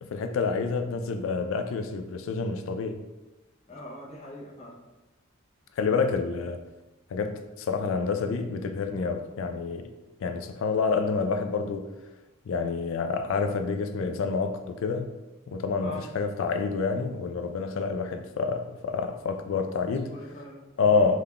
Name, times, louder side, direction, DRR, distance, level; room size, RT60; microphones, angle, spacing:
voice 1, 0.0-3.0 5.8-6.6 7.1-9.9 10.2-11.9 12.5-15.1 15.5-20.2 20.8-21.2, left 4 dB, 75° left, 0.3 m, -28 dB
voice 2, 3.7-4.8 15.8-16.0 19.8-21.1, left 1 dB, 30° left, 0.6 m, -42 dB
3.6 x 3.5 x 2.2 m
head